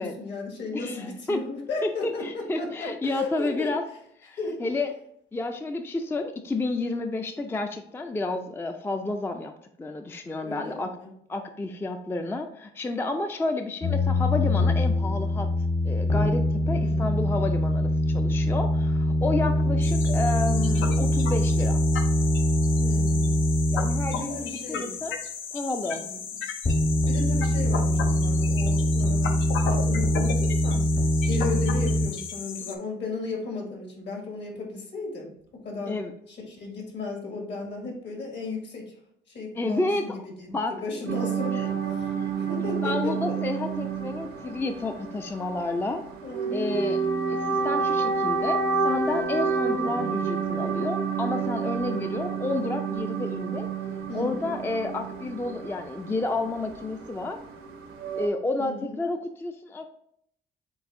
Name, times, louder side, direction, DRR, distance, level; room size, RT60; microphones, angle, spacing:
voice 1, 0.0-3.7 4.4-4.6 10.4-11.1 16.7-17.1 22.8-23.4 24.1-24.9 25.9-26.2 27.1-30.9 31.3-36.0 36.3-38.9 39.3-40.1 40.4-40.5 40.8-42.1 42.4-43.1 46.2-46.9 54.1-54.6 58.6-59.0, left 3 dB, 60° left, 0 dB, 1.8 m, -35 dB
voice 2, 0.7-1.5 1.8-3.8 4.2-4.9 5.3-9.5 9.8-10.9 11.3-15.5 15.8-21.8 23.7-25.2 25.5-26.0 35.9-36.1 39.5-40.2 40.5-40.8 41.5-41.6 42.2-42.3 42.8-46.0 46.5-47.0 47.3-53.7 54.1-57.4 58.2-59.9, left 2 dB, 10° left, 6 dB, 0.3 m, -30 dB
sound 1, 13.8-24.5 26.6-32.1, left 1 dB, 30° left, 0.8 m, -23 dB
sound 2, 19.8-32.8, left 6 dB, 80° left, 0.6 m, -35 dB
sound 3, 41.1-58.3, right 5 dB, 85° right, 0.7 m, -29 dB
7.7 x 2.6 x 2.5 m, 0.71 s
cardioid pair, 90°, 20 cm